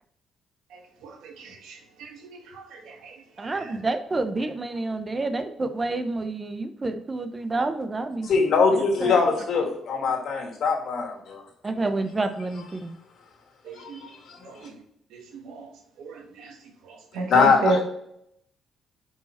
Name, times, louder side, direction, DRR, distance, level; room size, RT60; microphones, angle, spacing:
voice 1, 0.7-3.5 13.6-14.0 14.4-14.7 15.1-15.7 16.0-16.5 16.8-17.8, right 2 dB, 85° right, 3 dB, 1.3 m, -33 dB
voice 2, 3.4-8.3 8.7-9.3 11.6-13.0, right 2 dB, 25° right, 8 dB, 0.7 m, -29 dB
voice 3, 8.3-11.4 13.7-14.1 17.3-17.8, left 5 dB, 65° left, 0 dB, 1.8 m, -22 dB
5.6 x 4.8 x 4.2 m, 0.74 s
cardioid pair, 90°, 0 cm